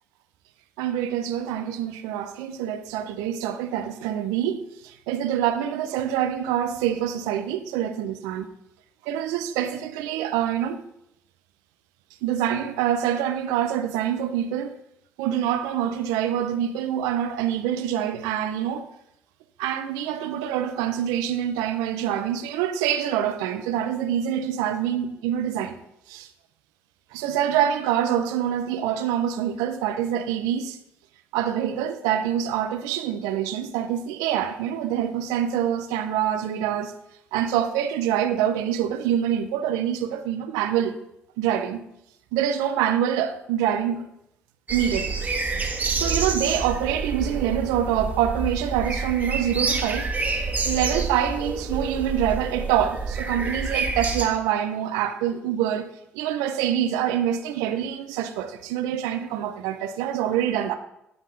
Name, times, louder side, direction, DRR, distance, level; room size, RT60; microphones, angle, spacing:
voice 1, 0.8-8.5 9.1-10.8 12.2-14.7 15.2-18.9 19.6-25.8 26.1-26.3 27.1-30.8 31.3-36.9 37.3-40.9 41.4-41.8 42.3-44.0 44.7-45.1 45.9-50.1 50.6-55.9 56.1-60.8, right 10 dB, 85° right, 0.6 m, -25 dB
sound 1, 44.7-54.2, right 4 dB, 25° right, 1.6 m, -28 dB
9.5 x 5.4 x 3.8 m
hypercardioid pair, 60°, 6 cm